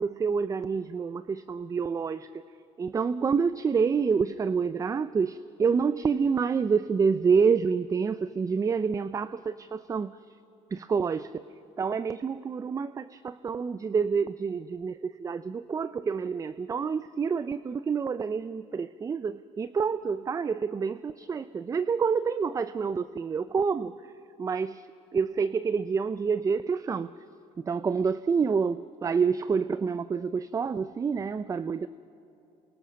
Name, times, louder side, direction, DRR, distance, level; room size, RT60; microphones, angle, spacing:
voice 1, 0.0-2.3 2.8-10.1 10.7-11.4 11.8-23.9 24.4-24.9 25.1-27.1 27.6-31.9, right 5 dB, 25° right, 15 dB, 0.5 m, -28 dB
28.5 x 23.5 x 6.5 m, 2.9 s
cardioid pair, 110°, 13 cm